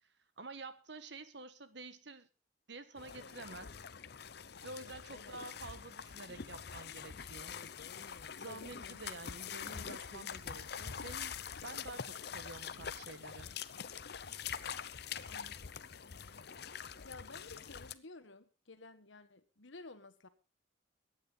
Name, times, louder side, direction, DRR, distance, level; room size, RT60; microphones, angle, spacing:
voice 1, 0.4-2.3 2.7-3.8 4.6-7.6 8.4-13.5, right 3 dB, 60° right, 11 dB, 1.4 m, -49 dB
sound 1, 3.0-17.9, left 7 dB, 55° left, 0.7 m, -45 dB
voice 2, 15.2-16.4 17.0-20.3, left 3 dB, 70° left, 11 dB, 1.5 m, -54 dB
22.0 x 9.4 x 4.1 m, 0.32 s
head